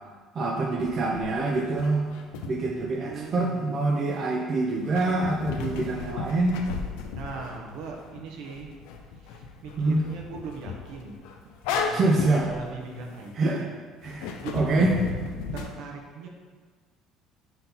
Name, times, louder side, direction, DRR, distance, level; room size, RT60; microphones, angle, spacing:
voice 1, 0.3-2.0 2.5-6.6 9.8-10.0 11.9-12.5 13.4-13.6 14.0-14.9, right 2 dB, 40° right, 0 dB, 0.6 m, -25 dB
sound 1, 0.8-3.3 4.8-13.6 14.0-15.7, left 5 dB, 90° left, 0.5 m, -35 dB
voice 2, 2.9-3.6 7.2-8.7 9.1-11.2 11.7-13.7 14.4-15.0 15.5-16.3, right 4 dB, 75° right, 0 dB, 1.0 m, -39 dB
4.4 x 4.0 x 5.4 m, 1.5 s
cardioid pair, 120°, 0 cm